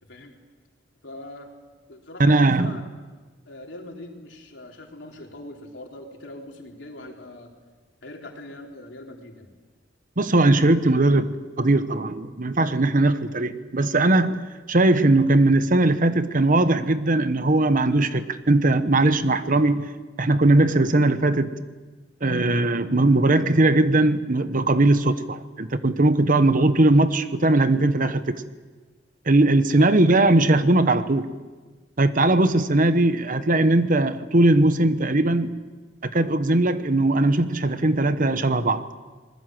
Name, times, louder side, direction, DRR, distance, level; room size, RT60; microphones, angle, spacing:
voice 1, 0.0-0.4 1.0-1.5 1.9-2.9 3.5-7.5 8.0-9.5 29.8-29.9 32.3-32.4, left 1 dB, 75° left, 1 dB, 3.9 m, -41 dB
voice 2, 2.2-2.8 10.2-14.4 14.7-19.9 20.2-21.5 22.2-28.4 29.3-31.3 32.0-35.6 36.0-38.8, right 2 dB, 45° right, 11 dB, 1.1 m, -19 dB
25.5 x 21.0 x 7.7 m, 1.4 s
head